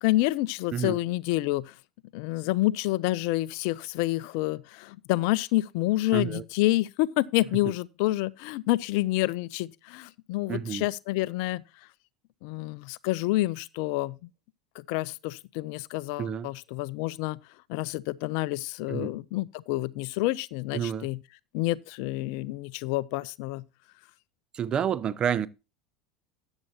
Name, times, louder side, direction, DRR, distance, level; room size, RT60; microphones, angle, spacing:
voice 1, 0.0-1.7 2.1-11.6 12.4-14.2 14.8-17.4 17.7-21.2 21.5-23.6, left 18 dB, 55° left, 0.5 m, -28 dB
voice 2, 6.1-6.4 10.5-10.8 16.2-16.5 18.9-19.1 20.7-21.1 24.5-25.5, right 8 dB, 30° right, 0.7 m, -29 dB
13.5 x 9.0 x 2.9 m
figure-of-eight pair, 75°, 3 cm